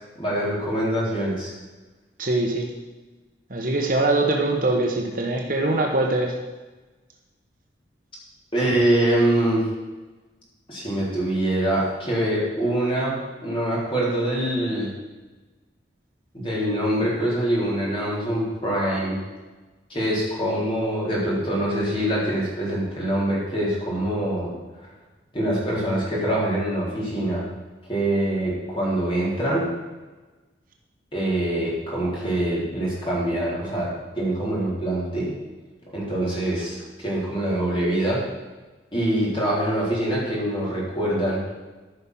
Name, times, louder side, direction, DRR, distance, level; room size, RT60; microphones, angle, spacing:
voice 1, 0.2-1.5 8.5-9.7 10.7-13.2 13.4-14.9 16.3-19.2 19.9-24.5 25.3-27.5 27.9-29.7 31.1-35.3 35.9-38.2 38.9-41.4, right 1 dB, 30° left, -5 dB, 3.7 m, -24 dB
voice 2, 2.2-2.7 3.5-6.4, right 2 dB, 45° right, 2 dB, 1.2 m, -23 dB
13.5 x 5.7 x 6.0 m, 1.2 s
head